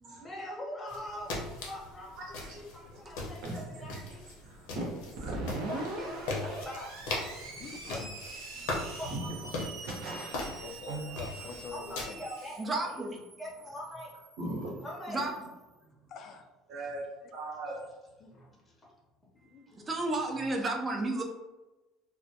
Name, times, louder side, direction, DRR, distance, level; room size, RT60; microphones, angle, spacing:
voice 1, 0.2-4.3 5.7-7.6 9.0-9.3 11.7-13.0 13.4-14.1 14.8-15.2 18.3-18.7 19.4-19.9, left 1 dB, 15° left, -4 dB, 0.7 m, -43 dB
sound 1, 0.9-12.0, left 2 dB, 85° left, 0.6 m, -40 dB
voice 2, 3.4-4.0 4.4-5.5 9.1-9.2 9.8-11.1 14.4-14.7 16.7-17.0 17.3-17.8, right 2 dB, 65° right, -3 dB, 0.8 m, -39 dB
Screech, 5.2-15.6, right 2 dB, 85° right, 0.6 m, -43 dB
voice 3, 7.5-8.1 10.6-12.2 15.1-15.3 16.1-16.5 18.2-18.4 19.4-19.9, left 5 dB, 45° left, 6 dB, 0.3 m, -46 dB
voice 4, 12.6-13.1 15.1-15.3 19.9-21.2, right 2 dB, 25° right, 2 dB, 0.4 m, -32 dB
2.2 x 2.1 x 2.7 m, 1.1 s
cardioid pair, 130°, 0 cm